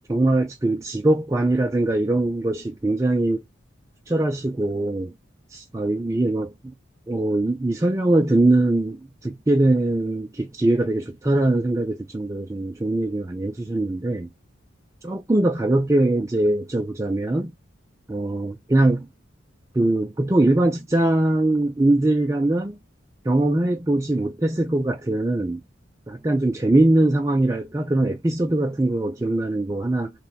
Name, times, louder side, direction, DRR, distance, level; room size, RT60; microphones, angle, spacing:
voice 1, 0.1-3.4 4.1-5.1 5.5-6.7 7.1-14.3 15.0-17.5 18.1-19.1 19.7-22.8 23.2-25.6 26.1-30.1, right 2 dB, 15° right, 0.3 m, -22 dB
3.1 x 2.2 x 4.1 m
head